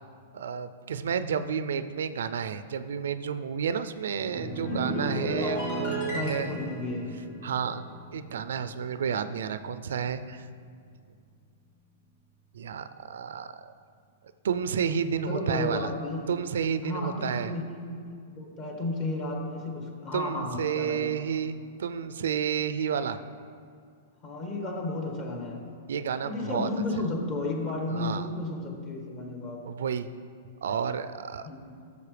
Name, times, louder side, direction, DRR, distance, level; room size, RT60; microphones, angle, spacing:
voice 1, 0.3-6.5 7.4-10.5 12.5-13.7 14.4-15.9 16.3-17.5 20.1-23.2 25.9-26.7 27.9-28.3 29.7-30.1 30.6-31.4, right 7 dB, 80° right, 12 dB, 0.4 m, -31 dB
sound 1, 4.1-8.7 9.0-9.3, right 1 dB, 60° left, 2.3 m, -34 dB
voice 2, 5.4-5.7 6.1-7.3 15.2-16.2 16.8-21.1 24.2-25.6 26.2-29.7 31.4-31.8, left 2 dB, 40° left, 1 dB, 1.6 m, -33 dB
12.0 x 6.7 x 3.3 m, 2.2 s
hypercardioid pair, 130°, 0 cm